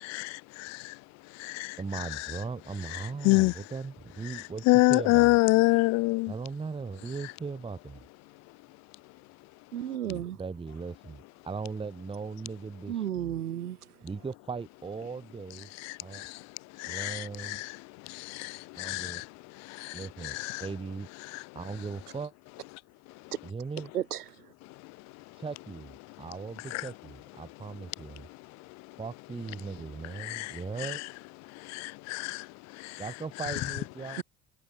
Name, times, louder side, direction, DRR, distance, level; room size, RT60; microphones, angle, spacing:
voice 1, 0.0-1.0 1.3-1.8 3.2-3.5 4.7-6.3 15.8-16.4 16.8-17.7 18.0-19.3 19.6-20.6 26.7-26.8 30.2-30.5 31.6-33.0, left 24 dB, 40° left, 0.5 m, -27 dB
voice 2, 1.8-5.4 6.3-8.0 10.0-13.4 14.0-15.7 16.0-16.3 16.9-17.6 18.8-19.2 19.9-21.1 21.5-22.3 23.4-23.9 25.4-28.3 29.0-31.0 33.0-34.2, right 4 dB, 10° right, 1.0 m, -38 dB
voice 3, 9.7-10.4 12.9-13.8 23.9-24.2 34.2-34.3, right 11 dB, 80° right, 0.8 m, -32 dB
figure-of-eight pair, 60°, 45 cm